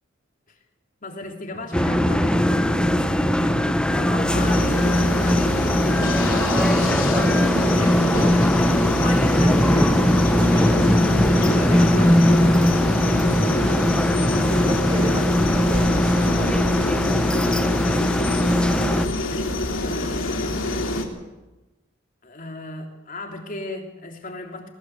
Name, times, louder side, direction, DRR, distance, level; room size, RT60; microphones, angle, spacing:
voice 1, 1.0-5.6 7.8-8.2 8.6-8.7 9.0-10.0 11.0-12.4 14.3-14.6 18.8-20.6 22.2-24.7, left 2 dB, 45° left, 3 dB, 3.3 m, -36 dB
Bowed string instrument, 1.2-5.4, right 3 dB, 90° right, 3.2 m, -37 dB
sound 1, 1.7-19.1, left 1 dB, 5° left, 0.7 m, -20 dB
sound 2, 4.3-21.0, left 2 dB, 80° left, 3.1 m, -26 dB
voice 2, 6.1-8.3 9.5-10.8 11.7-11.8 13.1-13.9 14.7-17.4, right 1 dB, 20° right, 5 dB, 1.9 m, -34 dB
20.0 x 19.0 x 8.2 m, 1.1 s
head